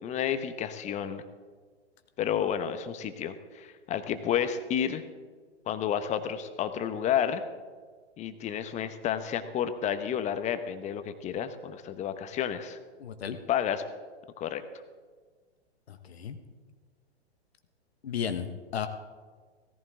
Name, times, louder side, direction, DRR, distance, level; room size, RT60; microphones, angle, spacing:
voice 1, 0.0-1.2 2.2-5.0 5.7-7.4 8.2-12.8 13.5-13.8 14.4-14.6, left 9 dB, 20° left, 10 dB, 1.0 m, -31 dB
voice 2, 13.0-13.4 15.9-16.4 18.0-18.9, left 8 dB, 70° left, 8 dB, 1.3 m, -34 dB
17.0 x 14.5 x 3.8 m, 1.5 s
figure-of-eight pair, 115°, 33 cm